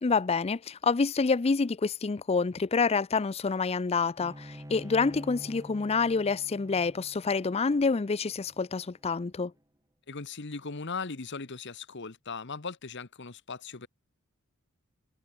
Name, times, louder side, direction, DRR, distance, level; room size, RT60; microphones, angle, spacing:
voice 1, 0.0-9.5, left 4 dB, 30° left, 0.4 m, -27 dB
Bowed string instrument, 4.2-9.5, equal, 15° right, 4.9 m, -48 dB
voice 2, 10.1-13.9, left 4 dB, 55° left, 1.3 m, -38 dB
head